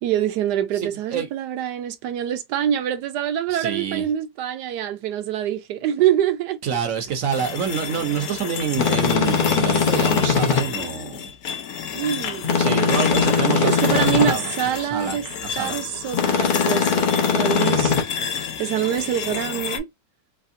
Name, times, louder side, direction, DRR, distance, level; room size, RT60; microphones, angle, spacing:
voice 1, 0.0-6.6 11.9-12.8 13.5-15.2 15.5-18.0 18.6-19.9, right 10 dB, 75° right, 1.2 m, -25 dB
voice 2, 0.7-1.3 3.5-4.1 6.6-11.3 12.6-14.4 14.7-15.8, right 7 dB, 60° right, 1.0 m, -27 dB
sound 1, 7.3-19.8, left 8 dB, 65° left, 1.0 m, -31 dB
sound 2, 8.7-10.6 12.4-14.3 16.1-18.0, left 6 dB, 50° left, 0.5 m, -20 dB
3.4 x 3.2 x 2.6 m
omnidirectional pair, 1.8 m